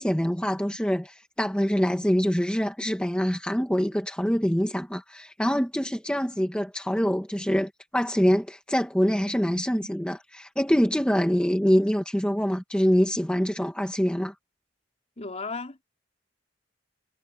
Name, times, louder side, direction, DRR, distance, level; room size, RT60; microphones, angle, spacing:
voice 1, 0.0-14.3, equal, 5° left, 1.6 m, -25 dB
voice 2, 15.2-15.8, left 4 dB, 35° left, 3.4 m, -35 dB
head